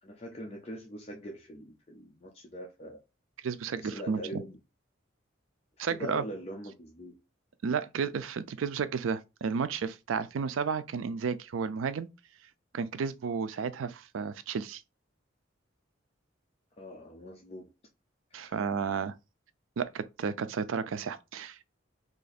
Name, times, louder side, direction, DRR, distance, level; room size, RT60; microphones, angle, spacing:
voice 1, 0.0-3.0 3.8-4.6 5.8-7.2 16.8-17.7 18.3-18.7, equal, 30° left, 0.5 m, -42 dB
voice 2, 3.4-4.4 5.8-6.2 7.6-12.1 12.7-14.8 18.3-19.2 19.8-21.8, right 6 dB, 80° right, 0.4 m, -32 dB
2.8 x 2.6 x 4.0 m
head